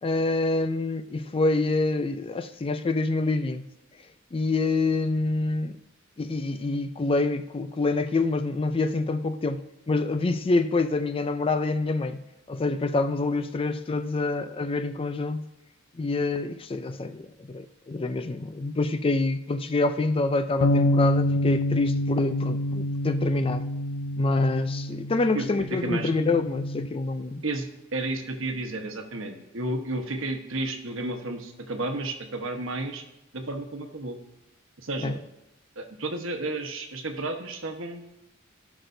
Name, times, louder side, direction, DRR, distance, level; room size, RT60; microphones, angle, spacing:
voice 1, 0.0-3.7 4.3-5.8 6.2-15.5 16.0-23.7 24.2-27.4 35.0-35.1, left 3 dB, 25° left, 0.4 m, -26 dB
sound 1, 20.6-26.9, left 1 dB, 90° left, 0.5 m, -27 dB
voice 2, 27.4-33.0 33.3-34.2 34.8-35.2 35.8-38.0, right 2 dB, 70° right, 1.2 m, -32 dB
16.5 x 6.1 x 2.7 m
head